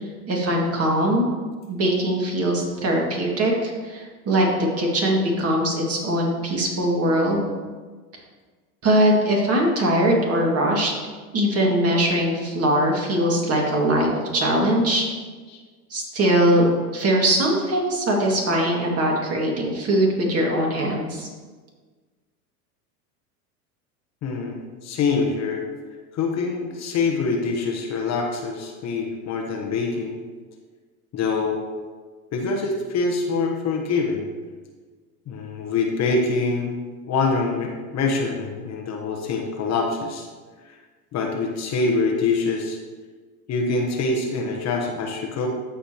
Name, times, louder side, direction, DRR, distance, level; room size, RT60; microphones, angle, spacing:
voice 1, 0.3-1.2 1.7-4.5 4.8-7.5 8.8-10.9 11.3-15.0 15.9-21.3, right 1 dB, 30° right, -1 dB, 2.2 m, -21 dB
voice 2, 24.2-25.6 26.1-30.2 31.1-31.6 32.3-34.3 35.3-36.8 37.1-40.3 40.7-40.8 41.1-42.8 43.5-45.5, left 4 dB, 35° left, 1 dB, 1.2 m, -25 dB
14.0 x 5.0 x 3.0 m, 1.4 s
hypercardioid pair, 95°, 46 cm